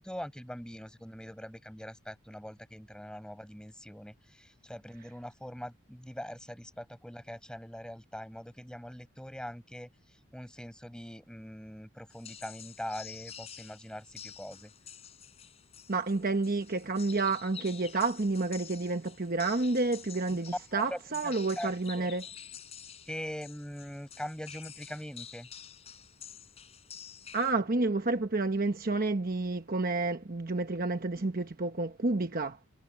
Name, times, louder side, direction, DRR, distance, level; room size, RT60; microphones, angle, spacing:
voice 1, 0.0-9.9 10.3-14.7 20.3-20.4 20.7-22.1 23.1-25.5, equal, 5° left, 5.8 m, -42 dB
sound 1, 12.1-27.5, left 8 dB, 30° left, 3.7 m, -49 dB
voice 2, 15.9-22.2 27.3-32.6, right 3 dB, 40° right, 1.0 m, -30 dB
head